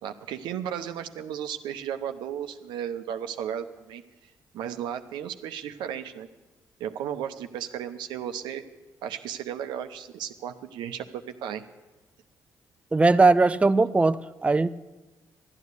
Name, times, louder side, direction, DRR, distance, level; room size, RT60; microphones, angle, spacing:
voice 1, 0.0-4.0 4.5-6.3 6.8-8.6 9.0-11.6, right 9 dB, 75° right, 0.8 m, -34 dB
voice 2, 12.9-14.7, right 3 dB, 15° right, 0.4 m, -20 dB
13.0 x 9.6 x 8.2 m
hypercardioid pair, 50°, 8 cm